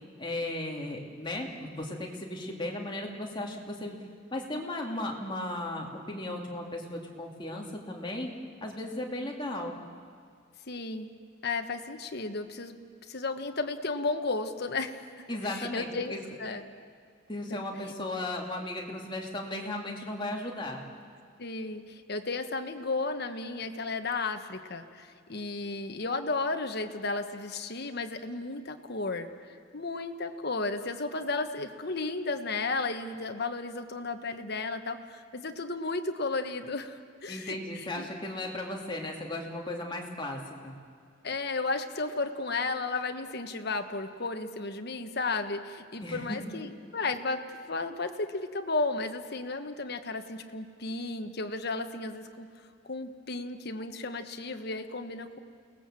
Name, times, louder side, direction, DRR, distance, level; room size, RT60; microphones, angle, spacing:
voice 1, 0.2-4.0 4.3-9.7 15.3-16.2 17.3-20.9 37.3-40.7 46.0-46.5, left 1 dB, 25° left, 0 dB, 2.6 m, -36 dB
voice 2, 10.7-11.1 11.4-12.8 13.1-16.6 17.5-17.6 21.4-29.3 29.7-38.1 41.2-52.5 52.8-55.4, left 3 dB, 55° left, 7 dB, 1.3 m, -34 dB
29.5 x 19.0 x 7.6 m, 2.1 s
head